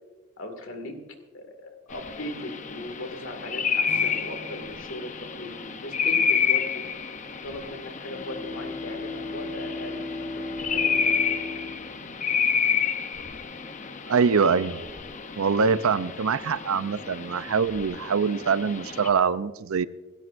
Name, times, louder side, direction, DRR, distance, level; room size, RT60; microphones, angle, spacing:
voice 1, 0.4-1.0 1.3-6.8 7.4-10.1 10.4-11.4, left 1 dB, 70° left, 6 dB, 2.1 m, -38 dB
sound 1, 1.9-19.1, left 6 dB, 35° left, 0.7 m, -30 dB
sound 2, 3.9-8.0, right 1 dB, 30° right, 1.1 m, -49 dB
Bowed string instrument, 8.1-13.0, left 2 dB, 55° left, 5.2 m, -36 dB
voice 2, 14.1-14.8 15.4-19.9, right 5 dB, 90° right, 15 dB, 0.6 m, -24 dB
27.0 x 12.5 x 2.5 m, 1.2 s
head